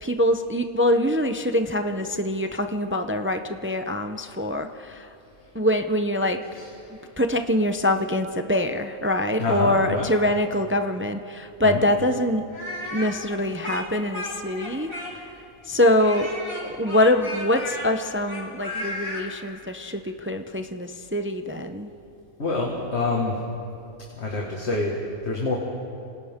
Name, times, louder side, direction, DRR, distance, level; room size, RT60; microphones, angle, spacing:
voice 1, 0.0-5.1 5.5-6.4 7.2-12.5 12.9-15.3 15.6-16.3 16.8-21.9, left 1 dB, 15° right, 6 dB, 0.4 m, -24 dB
voice 2, 9.4-10.1 11.6-11.8 22.4-23.4 24.1-25.6, left 2 dB, 50° left, -2 dB, 2.1 m, -27 dB
Speech, 12.5-15.4 16.0-19.3, left 1 dB, 65° left, 4.7 m, -34 dB
27.5 x 26.0 x 3.7 m, 2.6 s
omnidirectional pair, 1.5 m